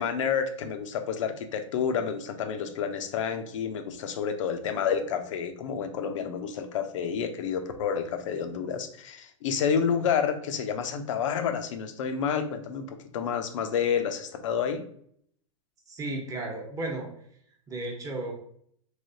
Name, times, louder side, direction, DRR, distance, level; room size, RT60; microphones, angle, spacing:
voice 1, 0.0-14.8, left 7 dB, 65° left, 7 dB, 0.6 m, -29 dB
voice 2, 15.9-17.1 17.7-18.3, right 2 dB, 20° right, 0 dB, 1.0 m, -34 dB
3.3 x 3.0 x 2.7 m, 0.65 s
hypercardioid pair, 115°, 17 cm